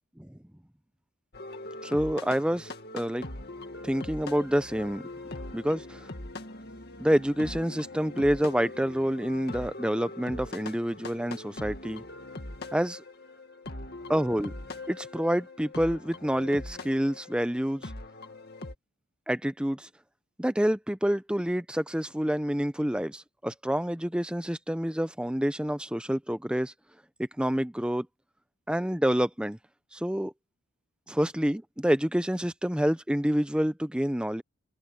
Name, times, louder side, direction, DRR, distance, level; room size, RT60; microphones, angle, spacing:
sound 1, 1.3-18.8, left 2 dB, 45° left, 2.1 m, -41 dB
voice 1, 1.8-3.3 3.8-5.0 5.5-6.1 7.0-12.0 12.7-13.0 14.1-14.5 14.9-17.9 19.3-19.9 20.4-26.7 27.4-28.1 28.7-29.6 29.9-30.3 31.1-34.4, equal, 5° right, 0.6 m, -28 dB
head